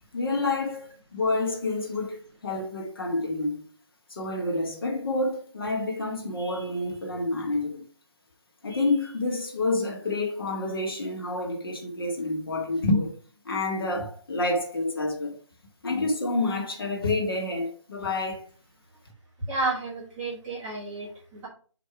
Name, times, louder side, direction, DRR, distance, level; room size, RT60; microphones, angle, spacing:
voice 1, 0.1-3.6 4.1-7.8 8.6-13.1 13.5-15.4 15.8-18.5, left 2 dB, 50° left, 1.7 m, -28 dB
voice 2, 19.5-21.5, right 3 dB, 10° right, 1.4 m, -31 dB
6.6 x 3.4 x 4.7 m
figure-of-eight pair, 170°, 16 cm